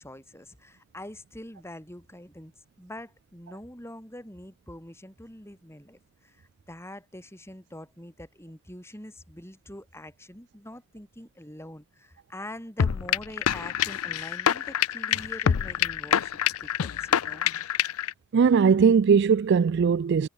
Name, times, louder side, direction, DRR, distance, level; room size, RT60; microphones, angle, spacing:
voice 1, 0.0-2.5 2.8-17.5, left 1 dB, 10° left, 6.0 m, -44 dB
sound 1, 12.8-18.1, left 9 dB, 80° left, 0.5 m, -26 dB
voice 2, 18.3-20.3, right 6 dB, 50° right, 0.3 m, -19 dB
head